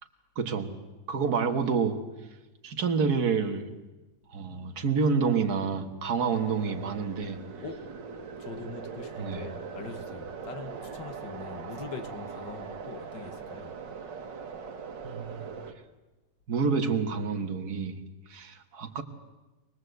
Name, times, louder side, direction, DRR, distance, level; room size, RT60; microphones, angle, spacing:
voice 1, 0.4-0.7 1.1-2.0 2.6-3.7 4.3-7.4 9.2-9.4 15.0-15.5 16.5-18.0 18.3-19.0, right 5 dB, 60° right, 2.1 m, -28 dB
sound 1, 6.2-15.7, right 5 dB, 90° right, 2.1 m, -41 dB
voice 2, 8.4-13.8, left 4 dB, 85° left, 2.2 m, -42 dB
23.5 x 20.0 x 8.0 m
omnidirectional pair, 1.9 m